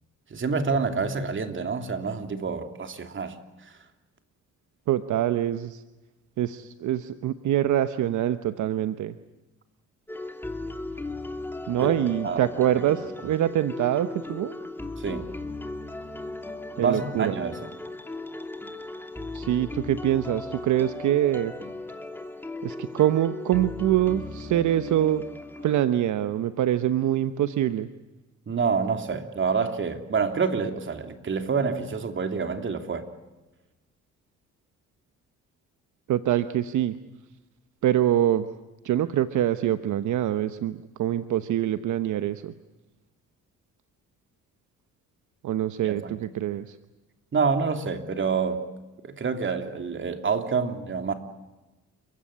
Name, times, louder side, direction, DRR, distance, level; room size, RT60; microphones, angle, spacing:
voice 1, 0.3-3.3 3.6-3.7 11.8-11.9 12.2-12.4 15.0-15.3 16.8-17.7 28.5-33.1 45.8-46.2 47.3-48.6 49.0-51.1, right 5 dB, 40° right, 7 dB, 3.1 m, -27 dB
voice 2, 4.9-5.8 6.4-9.1 11.7-14.5 16.8-17.3 19.3-21.5 22.6-25.2 25.6-27.9 36.1-37.0 37.8-38.5 38.8-42.5 45.4-46.8, right 12 dB, 75° right, 11 dB, 1.1 m, -25 dB
sound 1, 10.1-25.8, left 2 dB, 5° left, 2.7 m, -37 dB
29.5 x 16.5 x 10.0 m, 1.1 s
cardioid pair, 90°, 30 cm